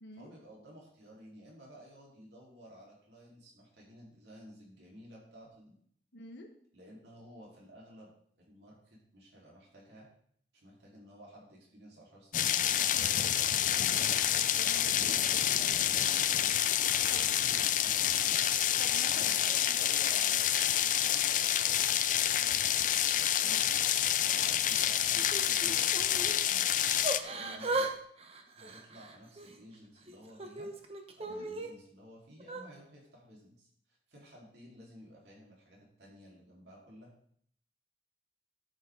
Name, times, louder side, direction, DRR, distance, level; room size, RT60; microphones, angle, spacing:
voice 1, 0.2-5.7 6.7-8.1 8.4-10.1 10.5-13.7 14.4-17.1 17.5-18.3 19.1-23.6 24.2-27.9 28.5-30.7 31.2-37.1, equal, 75° right, -3 dB, 4.3 m, -54 dB
voice 2, 6.1-6.5 14.6-15.0 17.1-17.3 18.8-19.4 23.4-23.6 27.4-27.6 31.3-31.5, left 1 dB, 85° left, 3 dB, 1.5 m, -47 dB
sound 1, 12.3-27.2, left 10 dB, 45° left, 0.5 m, -28 dB
Yell / Crying sobbing, 25.2-26.4 27.0-27.9 28.2-29.6 30.1-31.7 32.4-32.6, right 2 dB, 35° right, 1.0 m, -37 dB
12.0 x 8.1 x 4.0 m, 0.64 s
head